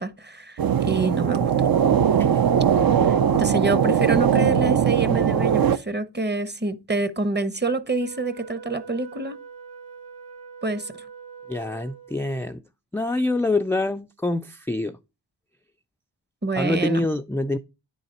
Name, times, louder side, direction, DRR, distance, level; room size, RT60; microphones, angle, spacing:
voice 1, 0.0-1.5 3.1-9.4 10.6-11.0 16.4-17.1, right 3 dB, 25° right, 0.9 m, -27 dB
sound 1, 0.6-5.8, right 8 dB, 50° right, 0.6 m, -20 dB
Wind instrument woodwind instrument, 8.0-12.4, right 6 dB, 80° right, 1.2 m, -43 dB
voice 2, 11.5-12.6 12.9-15.0 16.6-17.6, left 2 dB, 5° left, 0.4 m, -26 dB
9.5 x 4.0 x 4.3 m
cardioid pair, 45°, 45 cm